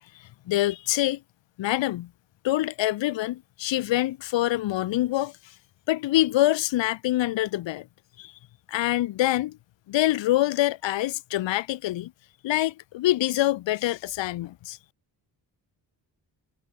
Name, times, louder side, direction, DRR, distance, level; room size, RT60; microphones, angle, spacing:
voice 1, 0.5-1.2 1.6-2.1 2.4-5.3 5.9-7.8 8.2-8.3 8.7-9.6 9.9-12.1 12.4-14.8, left 15 dB, 80° left, 0.6 m, -25 dB
wide cardioid pair, 120°, 44 cm